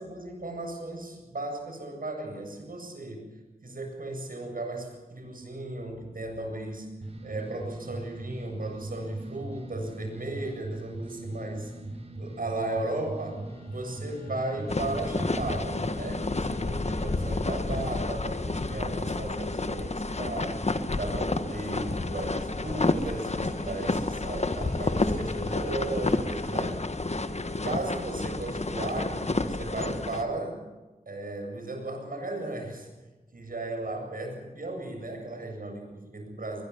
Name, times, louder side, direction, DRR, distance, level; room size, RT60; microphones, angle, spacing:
voice 1, 0.0-3.3 3.6-11.7 12.2-26.8 27.6-30.6 31.1-32.9 33.3-36.6, right 2 dB, 70° right, 2 dB, 7.7 m, -36 dB
sound 1, 7.0-16.1, right 2 dB, 40° right, 7.2 m, -40 dB
sound 2, 12.7-29.0, left 3 dB, 75° left, 3.9 m, -48 dB
sound 3, 14.7-30.2, left 2 dB, 45° left, 1.6 m, -30 dB
22.0 x 21.0 x 7.3 m, 1.2 s
wide cardioid pair, 60°, 15 cm